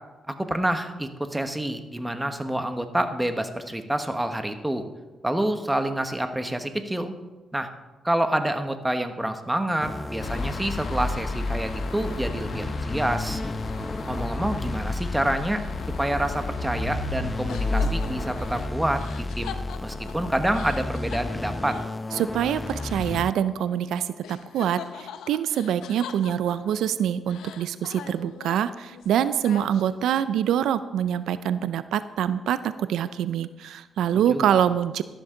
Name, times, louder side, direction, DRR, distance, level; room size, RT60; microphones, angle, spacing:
voice 1, 0.3-4.9 5.2-7.1 7.5-7.7 8.0-13.4 14.1-15.6 16.0-21.8 34.3-34.5, right 1 dB, 10° right, 7 dB, 1.3 m, -27 dB
sound 1, 9.8-23.3, left 2 dB, 20° left, 0.3 m, -33 dB
sound 2, 10.2-18.7, left 2 dB, 70° left, 1.7 m, -32 dB
sound 3, 17.5-23.9 24.2-26.9 27.3-30.1, left 8 dB, 85° left, 0.7 m, -43 dB
voice 2, 22.1-35.0, right 9 dB, 85° right, 14 dB, 0.4 m, -25 dB
13.0 x 11.5 x 3.8 m, 1.1 s
cardioid pair, 80°, 0 cm